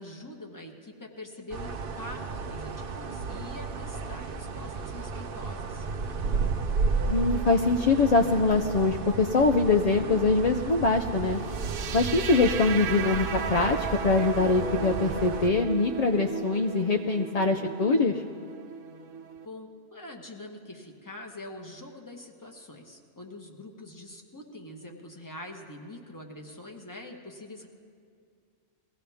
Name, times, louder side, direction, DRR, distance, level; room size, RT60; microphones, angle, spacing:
voice 1, 0.0-5.9 19.4-27.7, left 1 dB, 15° left, 2 dB, 1.2 m, -44 dB
sound 1, 1.5-15.5, right 4 dB, 55° right, 0.8 m, -33 dB
voice 2, 7.1-11.4 11.9-18.2, left 3 dB, 55° left, 5 dB, 0.4 m, -23 dB
sound 2, 11.4-19.5, right 6 dB, 85° right, 1.1 m, -36 dB
22.0 x 16.0 x 3.5 m, 2.2 s
omnidirectional pair, 1.3 m